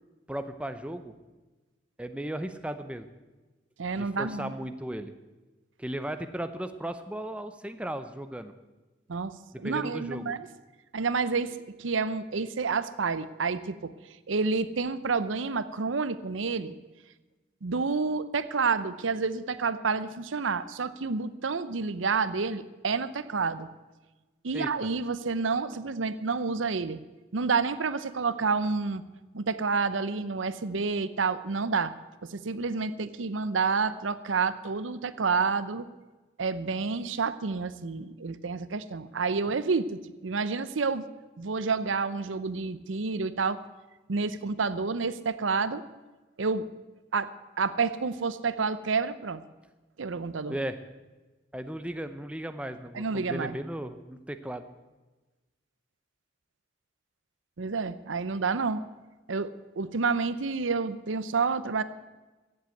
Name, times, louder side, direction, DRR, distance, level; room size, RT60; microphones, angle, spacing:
voice 1, 0.3-1.1 2.0-3.1 3.9-5.1 5.8-8.5 9.5-10.3 24.5-24.7 50.5-50.8 51.5-54.7, right 1 dB, 5° right, 9 dB, 0.6 m, -36 dB
voice 2, 3.8-4.5 9.1-9.3 9.6-10.4 10.9-13.9 14.3-16.7 17.6-23.7 24.4-27.0 27.3-29.0 29.3-31.9 32.2-35.9 36.4-41.0 41.4-43.6 44.1-45.8 46.4-46.6 47.1-47.3 47.6-49.4 50.0-50.6 52.9-53.6 57.6-58.8 59.3-61.8, right 4 dB, 90° right, 15 dB, 0.7 m, -29 dB
15.5 x 8.0 x 7.9 m, 1.2 s
head